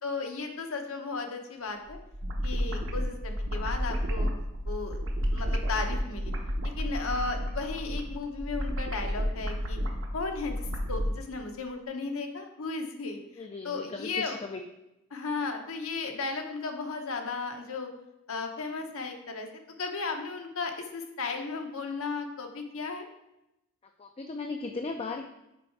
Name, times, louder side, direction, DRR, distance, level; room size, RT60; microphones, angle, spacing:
voice 1, 0.0-2.0 2.4-4.3 4.6-5.0 5.3-6.3 6.8-9.8 10.1-14.4 15.1-17.9 18.3-19.5 19.8-23.1, left 4 dB, 75° left, 4 dB, 0.9 m, -35 dB
sound 1, 1.9-11.1, equal, 60° right, 0.9 m, -31 dB
voice 2, 13.4-14.6 24.0-25.3, left 3 dB, 25° left, 4 dB, 0.4 m, -37 dB
6.1 x 4.4 x 4.6 m, 0.89 s
head